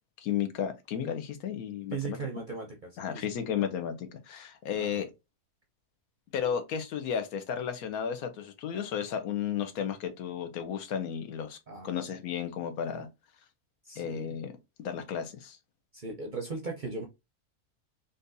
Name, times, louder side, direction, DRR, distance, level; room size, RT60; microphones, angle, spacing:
voice 1, 0.2-2.2 3.0-5.1 6.3-11.6 11.8-13.1 14.0-14.5 14.8-15.6, left 8 dB, 75° left, 1.1 m, -33 dB
voice 2, 1.9-3.7 4.7-5.0 11.7-11.9 13.8-14.4 15.9-17.0, right 4 dB, 50° right, 0.6 m, -38 dB
3.8 x 2.6 x 2.5 m
omnidirectional pair, 1.6 m